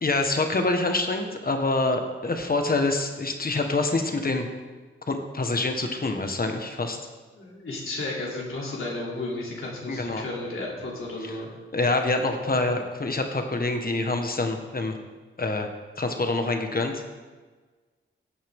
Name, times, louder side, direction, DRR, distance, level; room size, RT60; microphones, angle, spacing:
voice 1, 0.0-4.5 5.1-7.0 9.9-10.2 11.2-11.3 11.7-14.9 15.4-15.7 16.0-17.2, left 2 dB, 45° left, 5 dB, 1.5 m, -26 dB
voice 2, 7.3-11.5, left 2 dB, 80° left, -3 dB, 3.2 m, -33 dB
15.5 x 8.6 x 3.7 m, 1.4 s
cardioid pair, 70°, 21 cm